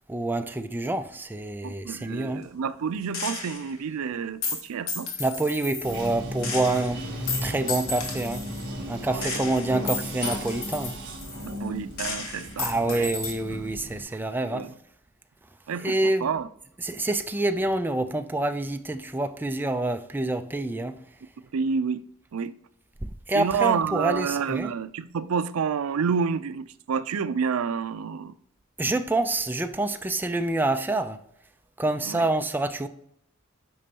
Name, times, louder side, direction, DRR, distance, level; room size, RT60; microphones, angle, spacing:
voice 1, 0.1-2.4 5.2-7.0 7.4-8.4 8.9-10.9 12.6-14.7 15.8-16.3 16.8-21.0 23.0-24.7 28.8-31.2 31.8-32.9, right 2 dB, 10° right, 0.4 m, -27 dB
voice 2, 1.6-5.1 9.1-9.5 11.4-13.1 13.5-13.6 14.5-14.7 15.7-16.5 21.5-22.0 22.3-22.5 23.3-28.3 32.0-32.3, right 6 dB, 80° right, 0.4 m, -29 dB
Gunshot gunfire, 3.1-3.7 4.4-6.1 6.4-8.7 9.2-11.7 12.0-13.3, left 4 dB, 70° left, 1.4 m, -33 dB
Bathtub (filling or washing), 5.8-14.0, equal, 55° right, 2.5 m, -36 dB
8.6 x 5.2 x 2.8 m
head